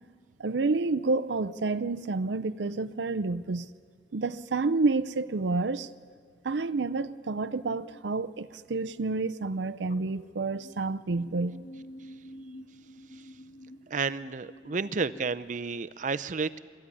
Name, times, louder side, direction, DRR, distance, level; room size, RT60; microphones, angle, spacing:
voice 1, 0.4-3.7 4.1-5.9 6.4-11.5, right 3 dB, 90° right, 0.6 m, -29 dB
sound 1, 7.5-8.0 9.8-10.8 11.2-15.3, equal, 50° left, 1.3 m, -49 dB
voice 2, 13.9-16.6, right 4 dB, 45° right, 0.6 m, -31 dB
23.5 x 14.5 x 9.8 m
head